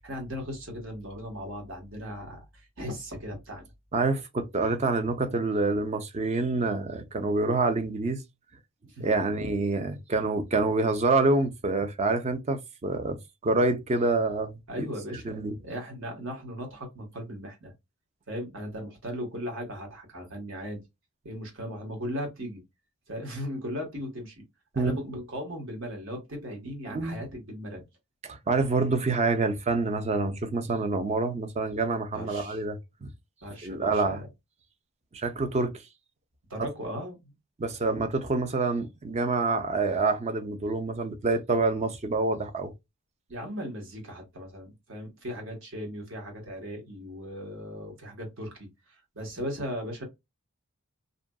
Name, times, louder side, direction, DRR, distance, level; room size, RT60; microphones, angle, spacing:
voice 1, 0.0-3.6 8.9-9.1 14.7-17.7 18.3-20.8 21.2-22.6 23.1-24.3 24.7-27.8 32.1-32.6 33.4-34.3 36.5-37.3 37.8-38.0 43.3-48.5 48.9-50.0, equal, 60° right, 1.3 m, -37 dB
voice 2, 3.9-8.2 9.0-13.2 13.4-14.6 15.1-15.5 24.8-25.0 26.8-27.2 28.2-33.1 33.6-34.2 35.1-35.7 37.6-42.7, right 3 dB, 30° right, 0.5 m, -27 dB
2.6 x 2.5 x 2.2 m
head